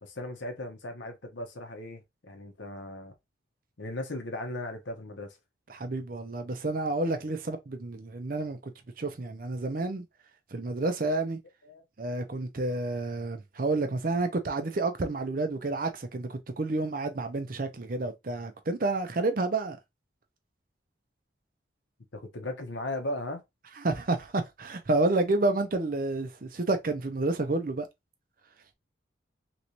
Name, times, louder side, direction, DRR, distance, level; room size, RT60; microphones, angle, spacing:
voice 1, 0.0-3.1 3.8-5.4 11.6-11.8 22.1-23.4, left 1 dB, 70° left, 0.9 m, -37 dB
voice 2, 5.7-8.7 9.0-10.0 10.5-11.4 12.0-19.8 23.8-27.9, right 2 dB, 45° right, 0.6 m, -30 dB
3.1 x 3.0 x 2.7 m
head